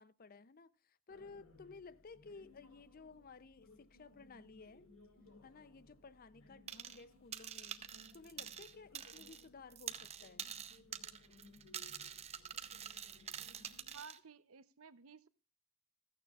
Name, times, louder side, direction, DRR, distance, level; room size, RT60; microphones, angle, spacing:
voice 1, 0.0-4.9 5.4-7.9 8.1-10.5, left 4 dB, 45° left, 0.5 m, -56 dB
sound 1, 1.1-14.0, left 2 dB, 70° left, 2.3 m, -64 dB
sound 2, 6.7-7.0 7.3-9.4 9.7-14.2, right 8 dB, 30° right, 0.7 m, -47 dB
voice 2, 13.9-15.3, right 5 dB, 80° right, 0.7 m, -55 dB
15.5 x 14.0 x 2.4 m
head